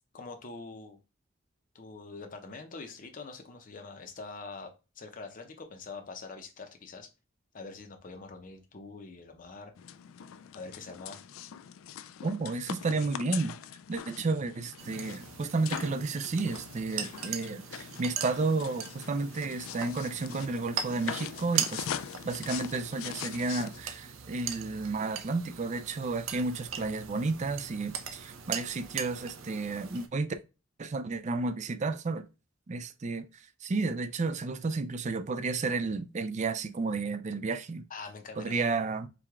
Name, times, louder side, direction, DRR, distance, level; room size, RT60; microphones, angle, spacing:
voice 1, 0.1-1.0 1.7-7.1 7.5-9.7 10.5-11.2 37.9-38.6, left 4 dB, 40° left, 0.7 m, -44 dB
sound 1, 9.8-23.8, left 9 dB, 80° left, 0.3 m, -42 dB
voice 2, 12.2-13.6 13.9-21.9 22.2-30.4 30.8-32.3 32.7-37.9 38.4-39.1, right 3 dB, 35° right, 0.4 m, -32 dB
sound 2, 14.8-30.1, right 8 dB, 75° right, 0.6 m, -40 dB
4.7 x 2.3 x 3.5 m
head